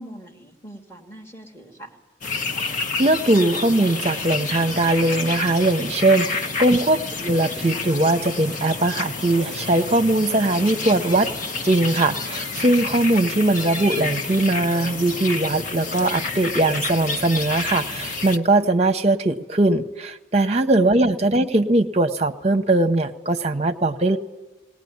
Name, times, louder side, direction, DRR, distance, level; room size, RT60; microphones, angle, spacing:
voice 1, 0.0-2.0, right 1 dB, 15° left, 1 dB, 2.3 m, -42 dB
sound 1, 2.2-18.4, left 3 dB, 45° left, 1.1 m, -29 dB
voice 2, 2.7-11.3 11.6-24.2, right 2 dB, 35° right, 8 dB, 0.8 m, -20 dB
19.5 x 18.0 x 9.5 m, 1.1 s
head